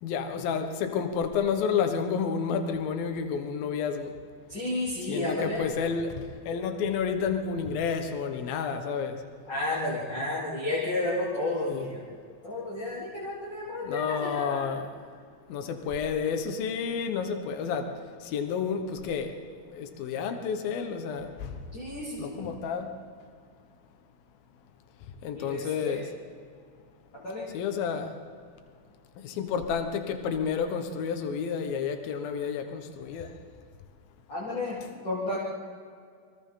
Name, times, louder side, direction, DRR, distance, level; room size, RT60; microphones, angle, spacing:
voice 1, 0.0-4.1 5.1-9.2 11.7-11.9 13.8-14.9 15.5-17.9 18.2-19.3 19.7-21.6 22.2-23.0 25.2-26.1 27.5-28.2 29.2-33.4, left 6 dB, 75° left, 6 dB, 3.1 m, -30 dB
voice 2, 4.5-5.6 9.5-12.0 12.4-14.7 21.7-22.5 25.4-26.1 27.1-27.5 34.3-35.4, left 2 dB, 30° left, -6 dB, 3.8 m, -32 dB
29.0 x 24.5 x 3.9 m, 2.2 s
omnidirectional pair, 4.4 m